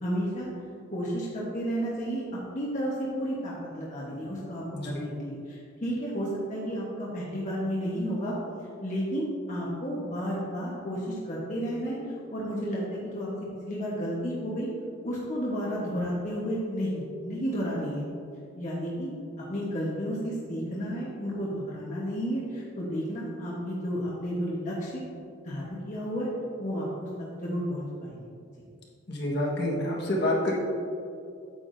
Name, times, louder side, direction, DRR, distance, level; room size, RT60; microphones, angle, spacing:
voice 1, 0.0-0.5 0.9-8.4 8.8-12.0 12.3-13.3 13.7-14.7 15.0-18.0 18.5-19.1 19.5-25.0 25.4-26.3 26.6-28.2, equal, 35° left, -6 dB, 1.2 m, -32 dB
voice 2, 29.1-30.5, left 1 dB, 55° left, -3 dB, 1.5 m, -27 dB
9.1 x 8.3 x 2.7 m, 2.5 s
head